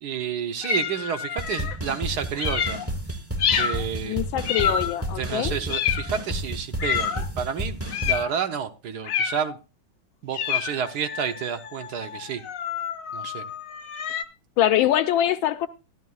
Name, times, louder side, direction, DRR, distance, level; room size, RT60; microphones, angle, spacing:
voice 1, 0.0-2.8 3.5-4.2 5.1-7.8 8.0-9.6 10.2-12.4 13.1-13.4, right 7 dB, 65° right, 1.2 m, -30 dB
sound 1, 0.6-1.8 2.4-2.9 3.4-3.9 4.5-5.1 5.7-6.2 6.8-7.3 7.9-8.3 9.0-9.6 10.3-14.2, left 8 dB, 65° left, 0.8 m, -28 dB
sound 2, 1.4-8.2, right 1 dB, 15° right, 0.4 m, -31 dB
voice 2, 4.0-5.5 14.6-15.7, left 12 dB, 85° left, 1.5 m, -23 dB
12.5 x 12.0 x 2.3 m
omnidirectional pair, 2.1 m